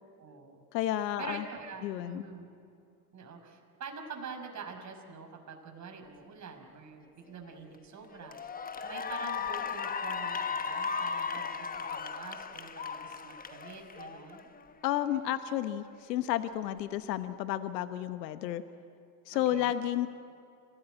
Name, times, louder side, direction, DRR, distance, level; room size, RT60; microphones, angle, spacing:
voice 1, 0.2-0.6 1.2-2.5 3.1-8.4 8.8-14.5 19.3-19.8, right 5 dB, 35° right, 3 dB, 5.8 m, -46 dB
voice 2, 0.7-1.4 1.8-2.2 14.8-18.6 19.3-20.1, left 12 dB, 80° left, 11 dB, 1.1 m, -31 dB
Cheering / Applause, 7.5-7.7 8.2-14.7, left 6 dB, 15° left, 1.1 m, -36 dB
27.5 x 18.0 x 9.2 m, 2.5 s
hypercardioid pair, 90°, 49 cm